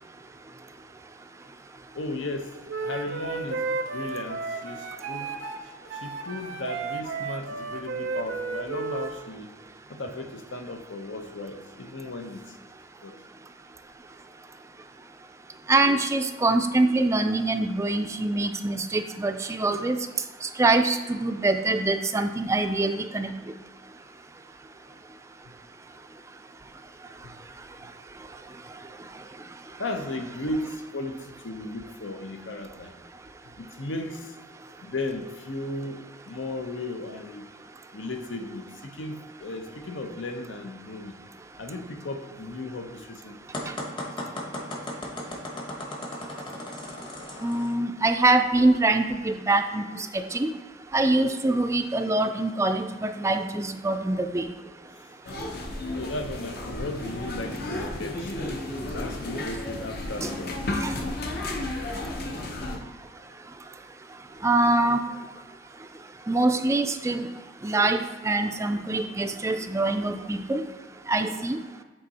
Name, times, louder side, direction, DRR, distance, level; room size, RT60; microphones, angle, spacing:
voice 1, 1.9-2.5 2.8-3.6 3.9-5.3 6.0-9.5 9.9-12.6 13.0-13.2 27.2-27.3 29.8-32.9 33.6-34.4 34.8-37.5 37.9-41.2 41.6-43.5 55.9-58.4 58.9-60.6, left 2 dB, 80° left, 5 dB, 0.8 m, -35 dB
Wind instrument woodwind instrument, 2.7-9.1, right 4 dB, 80° right, 0.6 m, -33 dB
voice 2, 15.7-20.0 20.4-23.3 47.4-49.8 50.1-50.5 50.9-54.5 60.2-60.3 60.8-61.0 64.4-65.0 66.3-67.3 67.6-70.6 71.1-71.6, right 2 dB, 15° right, 7 dB, 0.3 m, -24 dB
sound 1, 43.5-47.7, left 1 dB, 25° left, 1.0 m, -36 dB
sound 2, 55.2-62.8, left 1 dB, 55° left, 0.9 m, -33 dB
7.7 x 3.6 x 4.2 m, 1.3 s
head